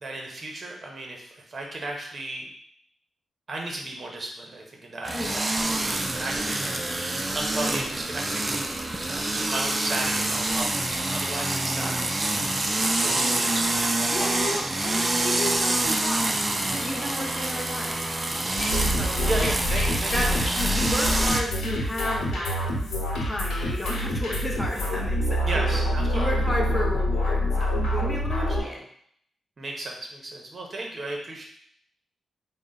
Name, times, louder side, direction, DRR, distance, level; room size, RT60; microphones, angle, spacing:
voice 1, 0.0-2.5 3.5-6.7 7.3-8.6 9.1-12.0 13.0-14.3 15.4-15.5 19.2-20.7 25.4-26.4 28.4-28.8 29.6-31.4, right 2 dB, 35° right, 0 dB, 0.8 m, -35 dB
sound 1, 5.0-21.4, right 2 dB, 20° right, 0.3 m, -26 dB
voice 2, 14.1-18.0 18.4-19.3 20.1-20.4 20.7-22.7 23.2-25.8 26.1-28.8, left 1 dB, 10° left, -1 dB, 0.7 m, -33 dB
sound 2, 18.6-28.6, equal, 90° left, 0.9 m, -26 dB
3.8 x 2.1 x 3.8 m, 0.67 s
wide cardioid pair, 125°, 0 cm